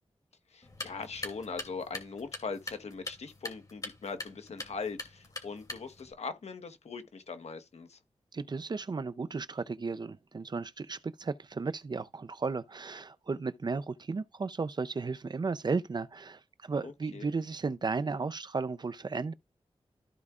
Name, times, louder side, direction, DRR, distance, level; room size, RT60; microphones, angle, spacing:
voice 1, 0.5-8.0 16.8-17.3, left 4 dB, 80° left, 1.1 m, -41 dB
sound 1, 0.6-6.1, left 2 dB, 35° left, 2.5 m, -44 dB
voice 2, 8.3-19.3, right 4 dB, 40° right, 0.5 m, -34 dB
14.0 x 4.7 x 2.4 m
wide cardioid pair, 110°, 11 cm